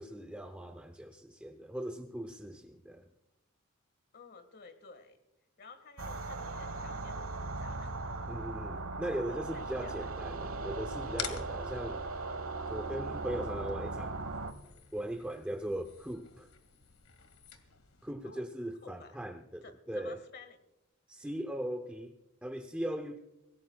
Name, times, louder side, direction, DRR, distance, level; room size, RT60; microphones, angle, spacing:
voice 1, 0.0-3.1 8.3-12.1 12.7-14.2 14.9-16.5 18.0-20.2 21.1-22.2 22.4-23.2, right 1 dB, 5° right, 5 dB, 0.6 m, -39 dB
voice 2, 4.1-5.2 5.6-8.0 9.3-10.1 18.2-18.5 18.8-19.2 19.6-20.6, left 4 dB, 45° left, 10 dB, 1.6 m, -53 dB
sound 1, 6.0-14.5, right 3 dB, 70° right, 1.2 m, -38 dB
sound 2, 11.1-18.1, left 8 dB, 75° left, 1.9 m, -48 dB
25.0 x 17.5 x 2.3 m, 0.90 s
head